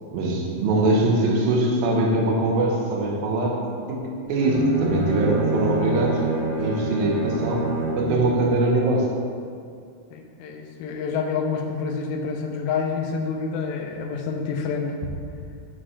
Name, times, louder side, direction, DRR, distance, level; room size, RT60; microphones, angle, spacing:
voice 1, 0.1-3.6 3.9-6.2 6.6-7.7 8.0-9.1, right 2 dB, 75° right, -1 dB, 2.7 m, -22 dB
Bowed string instrument, 4.3-8.2, right 2 dB, 30° right, 0.8 m, -26 dB
voice 2, 10.1-15.0, left 5 dB, 80° left, 3 dB, 2.5 m, -28 dB
11.0 x 5.9 x 3.2 m, 2.3 s
omnidirectional pair, 4.3 m